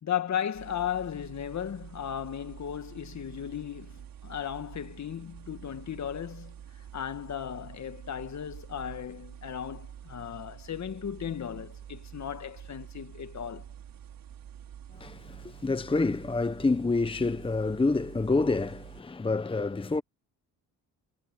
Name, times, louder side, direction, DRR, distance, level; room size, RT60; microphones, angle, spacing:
voice 1, 0.0-6.5 6.9-13.7, left 9 dB, 45° left, 1.8 m, -36 dB
sound 1, 0.5-19.0, right 9 dB, 60° right, 5.1 m, -47 dB
voice 2, 14.9-20.0, left 3 dB, 15° left, 1.0 m, -28 dB
cardioid pair, 85°, 39 cm